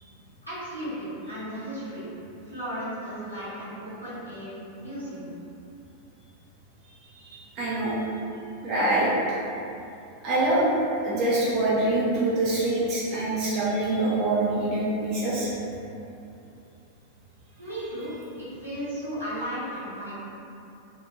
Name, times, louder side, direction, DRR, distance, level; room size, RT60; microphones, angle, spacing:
voice 1, 0.4-2.1 2.5-5.3 17.6-18.1 18.4-20.1, equal, 90° right, -12 dB, 0.9 m, -35 dB
voice 2, 7.0-8.1 8.6-9.4 10.2-10.8 11.0-15.5 17.7-17.9, right 2 dB, 40° right, -8 dB, 0.5 m, -25 dB
2.3 x 2.1 x 2.9 m, 2.7 s
figure-of-eight pair, 90°, 0 cm